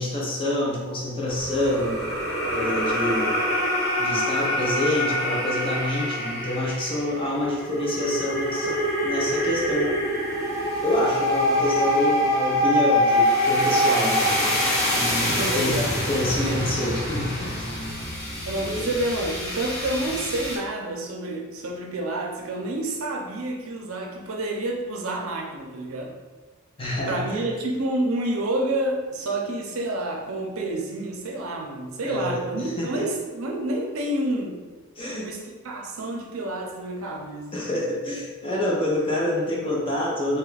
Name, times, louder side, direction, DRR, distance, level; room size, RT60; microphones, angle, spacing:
voice 1, 0.0-2.0 2.5-3.4 4.0-9.9 10.8-14.7 14.9-17.7 18.6-18.9 26.8-27.4 32.0-33.0 35.0-35.4 37.5-40.4, left 1 dB, 25° left, -4 dB, 0.5 m, -27 dB
sound 1, 1.3-20.6, equal, 50° left, 0.9 m, -25 dB
voice 2, 15.2-15.9 18.4-26.1 27.1-34.6 35.2-37.5, right 1 dB, 75° right, 1 dB, 0.5 m, -29 dB
2.8 x 2.4 x 3.2 m, 1.3 s
head